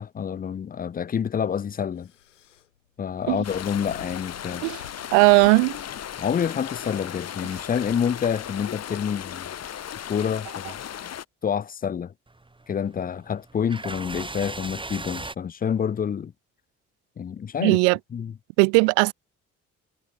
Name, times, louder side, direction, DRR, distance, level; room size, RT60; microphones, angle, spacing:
voice 1, 0.0-2.1 3.0-4.6 6.2-9.5 10.1-10.8 11.4-12.1 12.7-16.3 17.2-17.8 18.1-18.3, left 7 dB, 25° left, 0.6 m, -28 dB
sound 1, 1.1-6.1, left 11 dB, 80° left, 2.6 m, -51 dB
sound 2, 3.4-11.2, left 10 dB, 45° left, 1.7 m, -36 dB
voice 2, 5.1-5.8 17.6-18.0 18.6-19.1, right 38 dB, 65° right, 0.5 m, -18 dB
sound 3, 12.3-15.3, right 2 dB, 15° right, 2.3 m, -38 dB
figure-of-eight pair, 45°, 37 cm